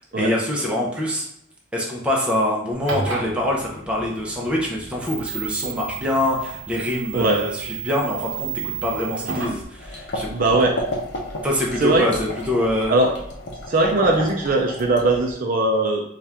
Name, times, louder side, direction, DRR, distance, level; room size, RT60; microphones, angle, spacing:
voice 1, 0.2-1.3 1.7-10.3 11.4-12.9, left 1 dB, 5° right, -3 dB, 0.6 m, -24 dB
sound 1, 2.7-9.6, right 4 dB, 65° right, 0.8 m, -32 dB
sound 2, 9.8-15.3, left 1 dB, 60° left, 0.7 m, -32 dB
voice 2, 10.3-10.8 11.8-12.1 12.9-13.1 13.7-16.0, right 2 dB, 45° right, 1 dB, 0.5 m, -19 dB
4.3 x 2.4 x 3.4 m, 0.72 s
head